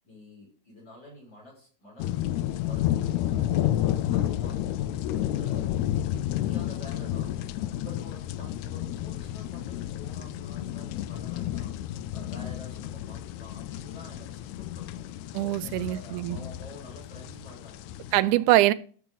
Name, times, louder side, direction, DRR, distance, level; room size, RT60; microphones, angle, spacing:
voice 1, 0.0-3.7 4.0-5.0 5.3-5.7 6.0-15.1 15.6-18.0, left 1 dB, 35° left, 7.0 m, -48 dB
sound 1, 2.0-18.2, left 12 dB, 80° left, 1.9 m, -31 dB
voice 2, 15.3-16.4 18.1-18.7, right 16 dB, 85° right, 2.0 m, -23 dB
13.0 x 8.2 x 4.0 m
omnidirectional pair, 3.5 m